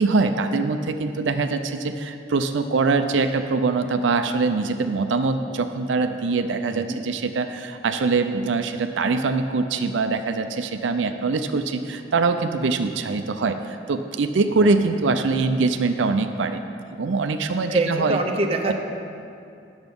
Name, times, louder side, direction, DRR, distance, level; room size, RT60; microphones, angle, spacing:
voice 1, 0.0-16.6 16.9-18.2 18.6-18.7, right 4 dB, 90° right, 8 dB, 0.5 m, -23 dB
voice 2, 6.7-7.0 14.5-14.7 17.7-18.7, right 2 dB, 35° right, 3 dB, 0.7 m, -25 dB
9.7 x 7.1 x 5.3 m, 2.5 s
head